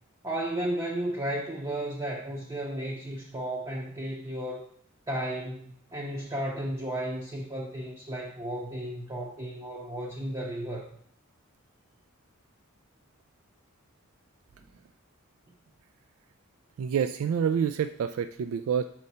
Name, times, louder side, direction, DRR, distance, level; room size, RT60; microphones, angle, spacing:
voice 1, 0.2-4.6 5.1-10.9, right 1 dB, 20° right, -2 dB, 0.7 m, -34 dB
voice 2, 16.8-18.8, right 7 dB, 70° right, 10 dB, 0.3 m, -27 dB
6.5 x 4.6 x 4.2 m, 0.64 s
head